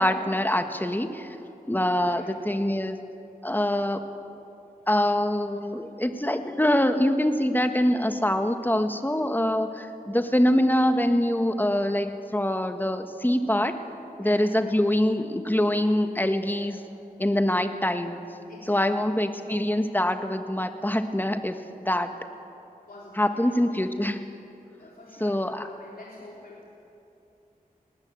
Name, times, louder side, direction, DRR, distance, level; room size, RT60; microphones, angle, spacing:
voice 1, 0.0-1.4 1.7-3.0 3.4-4.1 4.9-13.8 14.2-16.8 17.2-18.2 18.7-21.6 21.8-22.1 23.2-24.3 25.2-25.6, left 1 dB, 15° left, 7 dB, 1.5 m, -24 dB
voice 2, 2.0-2.4 14.2-14.8 16.5-16.7 18.5-19.2 22.9-23.5 24.8-26.7, left 2 dB, 75° left, -5 dB, 3.6 m, -48 dB
19.5 x 19.0 x 8.0 m, 2.7 s
wide cardioid pair, 50°, 15 cm